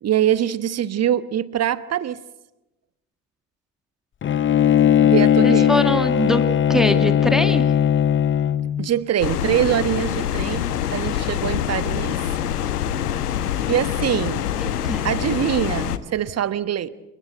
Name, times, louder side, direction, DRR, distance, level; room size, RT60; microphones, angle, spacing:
voice 1, 0.0-2.2 5.0-5.7 8.8-12.2 13.7-14.5 15.0-16.9, right 10 dB, 35° right, 15 dB, 1.2 m, -23 dB
Bowed string instrument, 4.2-8.9, left 9 dB, 25° left, 0.8 m, -18 dB
voice 2, 5.4-6.4 6.7-7.7 14.6-15.0, equal, ahead, 7 dB, 2.0 m, -23 dB
sound 1, 9.2-16.0, left 10 dB, 75° left, 1.2 m, -25 dB
28.5 x 18.5 x 7.9 m, 0.98 s
figure-of-eight pair, 60°, 46 cm